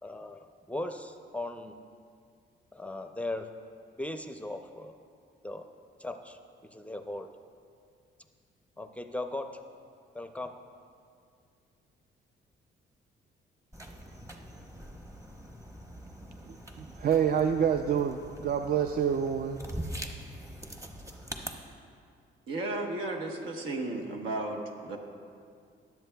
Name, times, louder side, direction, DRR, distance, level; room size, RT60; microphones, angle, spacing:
voice 1, 0.0-1.7 2.7-3.5 4.0-5.0 5.4-5.7 6.0-6.4 6.7-7.3 8.8-9.5 10.1-10.6, left 2 dB, 5° left, 6 dB, 0.5 m, -38 dB
sound 1, 13.7-21.5, right 1 dB, 15° right, 0.9 m, -43 dB
voice 2, 16.5-19.6, right 8 dB, 50° right, 6 dB, 0.4 m, -27 dB
voice 3, 22.5-25.0, right 2 dB, 85° right, 2 dB, 1.2 m, -34 dB
20.5 x 7.6 x 2.3 m, 2.3 s
cardioid pair, 90°, 20 cm